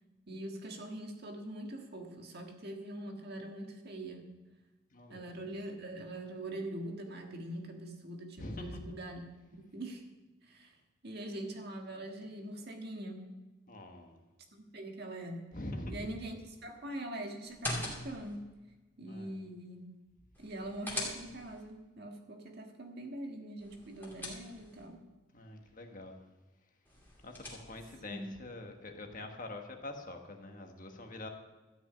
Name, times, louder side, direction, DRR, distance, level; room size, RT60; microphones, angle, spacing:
voice 1, 0.3-4.3 5.1-9.2 9.5-10.1 10.4-10.8 11.0-13.3 14.5-15.5 15.9-18.4 19.0-19.8 20.4-25.1 28.1-28.4, right 1 dB, 50° right, 3 dB, 1.6 m, -43 dB
voice 2, 4.9-5.2 8.4-8.8 13.7-14.2 15.5-16.1 19.0-19.4 25.3-26.1 27.2-31.3, left 2 dB, 40° left, 4 dB, 1.4 m, -44 dB
sound 1, 17.4-18.4 20.3-21.6 23.6-24.9 26.8-28.0, left 1 dB, 10° left, 2.4 m, -42 dB
13.0 x 6.0 x 8.6 m, 1.1 s
head